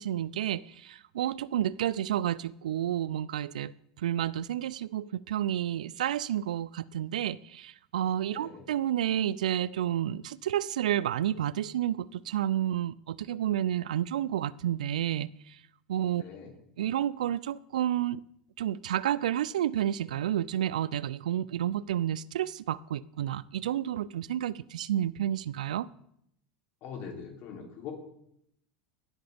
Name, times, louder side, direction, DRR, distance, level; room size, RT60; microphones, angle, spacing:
voice 1, 0.0-15.6 15.9-16.2 16.8-18.2 18.6-25.9, right 11 dB, 90° right, 0.3 m, -30 dB
voice 2, 8.3-8.6 16.2-16.5 26.8-27.9, left 7 dB, 55° left, 3.1 m, -42 dB
17.5 x 7.7 x 3.5 m
hypercardioid pair, 110°, 4 cm